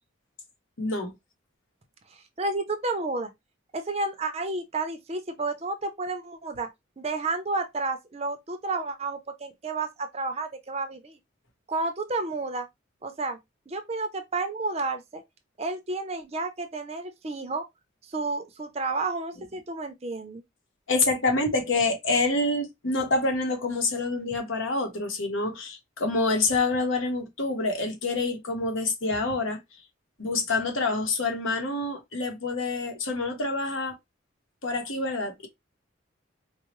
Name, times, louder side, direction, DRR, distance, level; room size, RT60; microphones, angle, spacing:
voice 1, 0.8-1.1 20.9-29.6 30.2-33.9 34.6-35.5, left 3 dB, 80° left, 1.1 m, -27 dB
voice 2, 2.4-3.3 3.7-6.7 7.0-11.2 11.7-12.7 13.0-13.4 13.7-15.2 15.6-17.6 18.0-20.4, right 3 dB, 30° right, 0.5 m, -31 dB
4.5 x 2.0 x 3.0 m
head